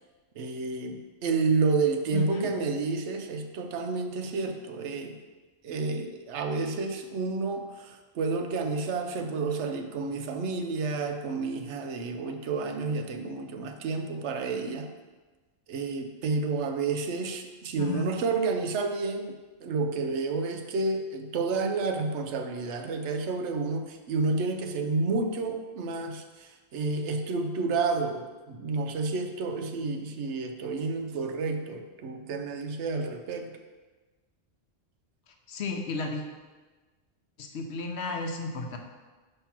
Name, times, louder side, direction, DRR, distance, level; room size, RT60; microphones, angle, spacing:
voice 1, 0.4-5.2 5.6-14.9 15.7-33.5, right 4 dB, 85° right, 5 dB, 0.9 m, -30 dB
voice 2, 2.1-2.5 17.8-18.1 35.5-36.2 37.4-38.8, left 3 dB, 70° left, 3 dB, 1.0 m, -33 dB
5.7 x 3.3 x 5.8 m, 1.3 s
omnidirectional pair, 1.1 m